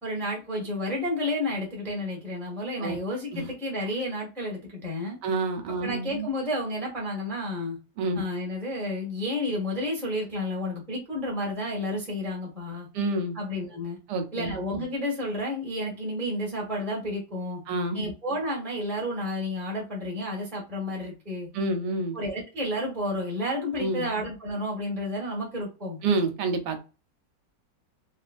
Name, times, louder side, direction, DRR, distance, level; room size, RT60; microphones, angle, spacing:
voice 1, 0.0-5.2 5.8-7.8 8.1-12.9 13.3-14.0 14.3-17.6 17.9-21.5 22.1-26.0, left 1 dB, ahead, -2 dB, 0.5 m, -31 dB
voice 2, 5.2-6.3 8.0-8.2 12.9-13.4 14.1-14.6 17.7-18.1 21.5-22.2 23.8-24.1 26.0-26.8, right 3 dB, 75° right, 7 dB, 1.1 m, -28 dB
2.9 x 2.4 x 2.3 m, 0.32 s
omnidirectional pair, 1.9 m